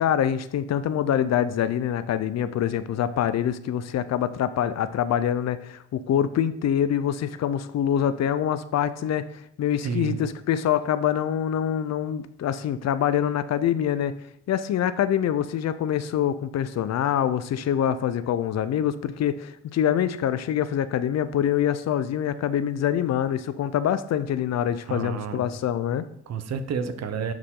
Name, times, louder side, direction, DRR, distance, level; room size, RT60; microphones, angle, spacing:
voice 1, 0.0-14.1 14.5-26.1, left 9 dB, 60° left, 13 dB, 0.6 m, -25 dB
voice 2, 9.8-10.2 24.9-25.4 26.3-27.3, right 6 dB, 60° right, 10 dB, 0.9 m, -30 dB
10.5 x 4.8 x 3.8 m, 0.72 s
cardioid pair, 90°, 30 cm